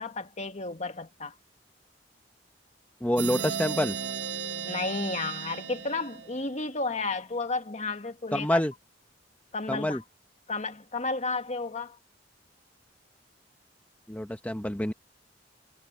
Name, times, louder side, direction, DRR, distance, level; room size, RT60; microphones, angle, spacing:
voice 1, 0.0-1.3 4.6-8.6 9.5-10.0 10.5-12.0, left 3 dB, 40° left, 1.6 m, -32 dB
voice 2, 3.0-3.9 8.3-8.7 9.7-10.0 14.1-14.9, left 1 dB, 10° left, 1.0 m, -27 dB
sound 1, 3.2-6.7, right 7 dB, 85° right, 1.2 m, -35 dB
head